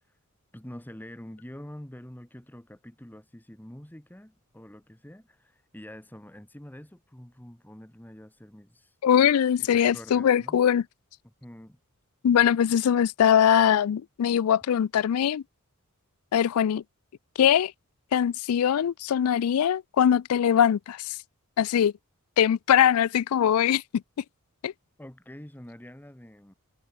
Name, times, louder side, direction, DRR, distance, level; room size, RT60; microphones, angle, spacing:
voice 1, 0.5-8.9 9.6-10.6 11.2-11.8 25.0-26.5, left 1 dB, 10° left, 1.2 m, -46 dB
voice 2, 9.0-10.8 12.2-15.4 16.3-16.8 17.4-17.7 18.1-21.1 21.6-21.9 22.4-23.8 24.6-24.7, left 9 dB, 75° left, 0.3 m, -22 dB
head